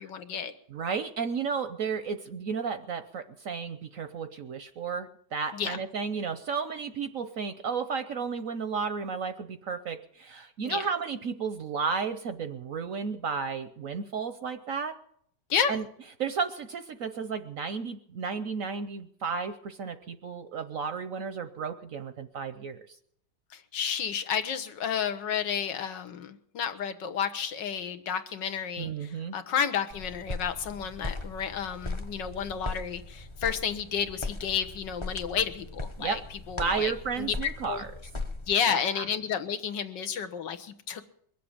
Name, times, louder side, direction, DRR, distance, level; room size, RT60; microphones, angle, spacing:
voice 1, 0.0-0.5 5.5-5.8 10.7-10.8 15.5-15.7 23.7-36.2 36.5-36.9 37.2-37.3 37.7-37.8 38.5-41.0, left 7 dB, 75° left, 9 dB, 1.7 m, -31 dB
voice 2, 0.7-14.9 15.7-15.8 16.2-22.8 28.8-29.4 36.0-36.2 36.6-37.9 38.7-39.0, right 5 dB, 60° right, 10 dB, 1.0 m, -33 dB
sound 1, 29.9-38.5, left 2 dB, 20° left, 0.8 m, -38 dB
21.5 x 7.7 x 8.7 m, 0.67 s
omnidirectional pair, 2.0 m